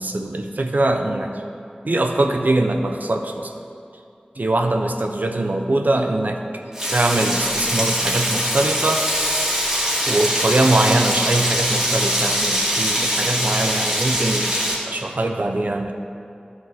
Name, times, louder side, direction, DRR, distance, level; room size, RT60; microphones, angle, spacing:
voice 1, 0.0-1.3 1.8-3.5 4.4-6.6 6.9-9.1 10.1-14.6 14.9-15.9, right 2 dB, 65° right, 4 dB, 0.7 m, -22 dB
Frying (food), 6.7-14.7, equal, 20° right, 2.2 m, -22 dB
13.0 x 6.1 x 3.6 m, 2.5 s
wide cardioid pair, 50°, 3 cm